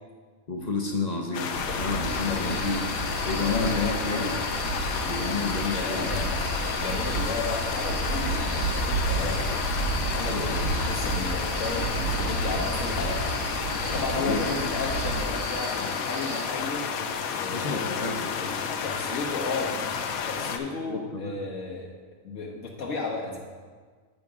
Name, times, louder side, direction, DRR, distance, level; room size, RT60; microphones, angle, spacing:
voice 1, 0.5-1.5 1.8-2.8 3.3-4.3 5.1-6.1 10.3-10.6 13.9-14.5 17.5-18.3 20.9-21.4, left 3 dB, 40° left, 1 dB, 0.7 m, -30 dB
sound 1, 1.3-20.6, left 6 dB, 90° left, 1.1 m, -31 dB
sound 2, 1.5-15.2, right 3 dB, 55° right, 1.4 m, -32 dB
sound 3, 2.0-16.4, right 3 dB, 80° right, 1.5 m, -40 dB
voice 2, 2.2-2.7 3.4-4.3 5.6-9.4 10.0-13.2 13.8-17.0 17.3-19.8 20.2-21.9 22.2-23.4, left 3 dB, 70° left, -3 dB, 1.3 m, -34 dB
8.9 x 6.6 x 3.6 m, 1.5 s
omnidirectional pair, 1.4 m